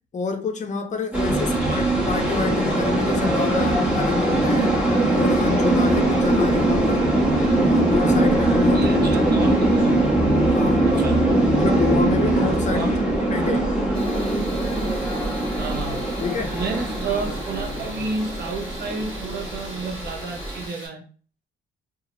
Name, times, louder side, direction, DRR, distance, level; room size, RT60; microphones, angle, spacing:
voice 1, 0.1-4.8 5.1-7.1 7.4-9.5 10.5-11.0 11.5-12.9 13.3-13.7 16.2-16.6, left 5 dB, 35° left, 0.5 m, -28 dB
sound 1, 1.1-20.7, right 1 dB, 5° right, 0.9 m, -21 dB
voice 2, 8.7-10.0 10.9-11.2 12.7-13.0 15.6-16.1 16.5-21.0, right 4 dB, 55° right, 0.8 m, -31 dB
Tools, 13.9-20.9, equal, 25° right, 1.3 m, -41 dB
2.8 x 2.3 x 2.8 m
cardioid pair, 90°, 20 cm